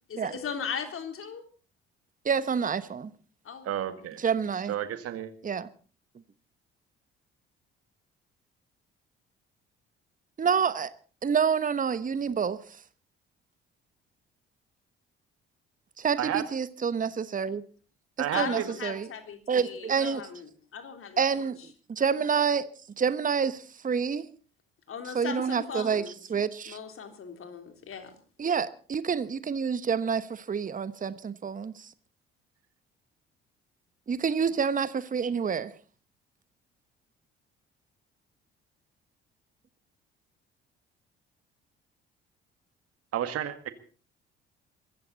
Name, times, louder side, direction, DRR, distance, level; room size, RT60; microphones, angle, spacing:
voice 1, 0.1-1.4 3.4-3.8 18.3-21.5 24.9-26.2 26.7-28.2, left 7 dB, 45° left, 3.7 m, -38 dB
voice 2, 2.2-3.1 4.2-4.7 5.4-5.7 10.4-10.9 11.2-12.6 16.0-17.6 18.4-19.1 19.5-20.2 21.2-21.6 21.9-22.7 23.0-24.2 25.1-26.0 26.3-26.8 28.4-31.9 34.1-35.7, right 6 dB, 25° right, 1.1 m, -28 dB
voice 3, 3.7-4.2 4.7-5.3 16.2-16.5 18.2-18.7 43.1-43.7, right 11 dB, 50° right, 1.9 m, -31 dB
23.5 x 15.0 x 4.2 m
figure-of-eight pair, 50°, 30 cm